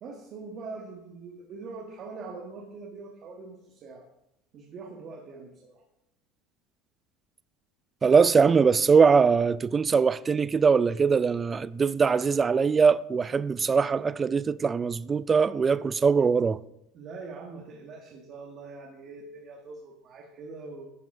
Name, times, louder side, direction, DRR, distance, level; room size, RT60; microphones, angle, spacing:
voice 1, 0.0-4.1 4.5-5.8 16.9-20.9, right 4 dB, 45° right, 1.5 m, -43 dB
voice 2, 8.0-16.6, right 5 dB, 25° right, 0.4 m, -22 dB
11.0 x 5.1 x 6.0 m
supercardioid pair, 120°, 0 cm